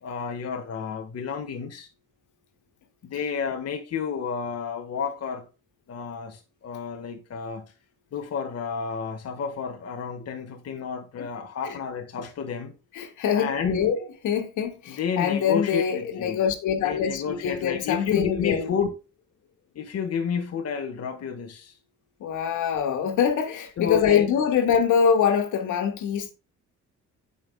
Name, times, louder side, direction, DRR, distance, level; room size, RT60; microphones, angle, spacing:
voice 1, 0.0-1.9 3.0-5.5 5.9-7.7 8.1-12.7 13.3-13.8 14.9-16.4 16.8-19.0 19.7-21.7 23.8-24.3, left 6 dB, 55° left, 1.5 m, -30 dB
voice 2, 12.9-14.0 14.2-18.7 22.2-26.3, left 7 dB, 80° left, 2.1 m, -24 dB
16.0 x 5.5 x 2.2 m
cardioid pair, 90°, 30 cm